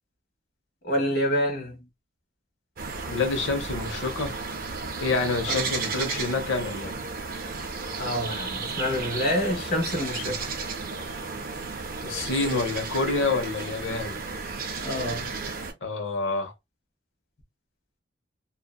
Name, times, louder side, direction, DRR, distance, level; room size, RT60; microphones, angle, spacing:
voice 1, 0.8-1.8 5.5-5.6 8.0-10.5 14.8-15.3, equal, 50° left, 0.9 m, -27 dB
sound 1, 2.8-15.7, right 4 dB, 45° right, 0.5 m, -33 dB
voice 2, 3.1-4.3 5.0-6.9 12.0-14.2 15.8-16.5, left 3 dB, 80° left, 0.8 m, -27 dB
2.6 x 2.1 x 2.2 m
head